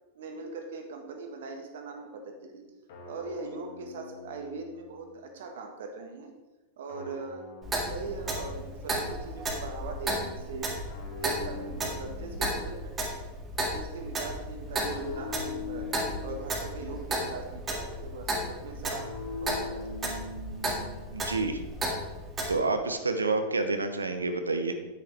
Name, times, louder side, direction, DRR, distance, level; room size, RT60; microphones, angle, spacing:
voice 1, 0.1-2.6 3.1-6.3 6.8-7.4 7.8-10.8 11.2-13.0 13.5-15.9 16.2-19.9, right 4 dB, 60° right, 4 dB, 1.5 m, -41 dB
sound 1, 2.9-5.2 6.9-9.1 10.9-13.2 14.9-17.1 18.9-21.2, left 4 dB, 55° left, 2.2 m, -43 dB
Clock, 7.6-22.5, right 1 dB, 20° right, 2.0 m, -34 dB
voice 2, 21.1-21.6 22.5-24.7, right 3 dB, 75° right, 8 dB, 0.7 m, -28 dB
9.3 x 9.2 x 3.4 m, 1.1 s
figure-of-eight pair, 90°, 0 cm